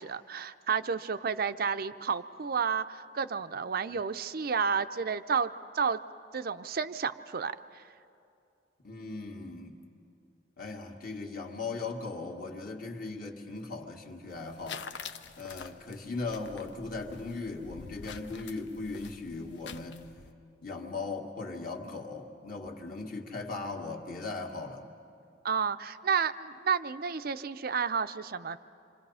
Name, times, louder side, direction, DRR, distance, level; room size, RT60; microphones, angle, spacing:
voice 1, 0.0-6.0 6.3-7.6 25.4-28.6, right 6 dB, 50° right, 12 dB, 0.5 m, -31 dB
voice 2, 8.8-9.8 10.6-14.8 15.4-20.0 20.6-24.8, left 3 dB, 50° left, 1 dB, 1.9 m, -38 dB
sound 1, 14.3-20.3, left 5 dB, 65° left, 0.7 m, -46 dB
27.5 x 25.5 x 5.6 m, 2.6 s
head